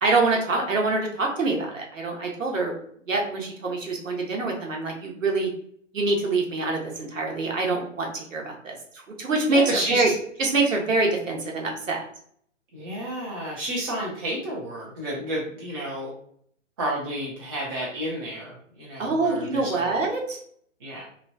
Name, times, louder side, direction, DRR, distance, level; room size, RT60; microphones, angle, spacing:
voice 1, 0.0-2.7 3.1-5.5 5.9-9.6 9.9-10.1 10.4-12.1 19.0-20.4, right 3 dB, 80° right, 0 dB, 0.9 m, -25 dB
voice 2, 9.5-10.0 12.7-16.1 16.8-19.9 20.8-21.1, right 1 dB, 20° right, -6 dB, 0.4 m, -31 dB
3.0 x 2.1 x 2.6 m, 0.64 s
figure-of-eight pair, 125°, 38 cm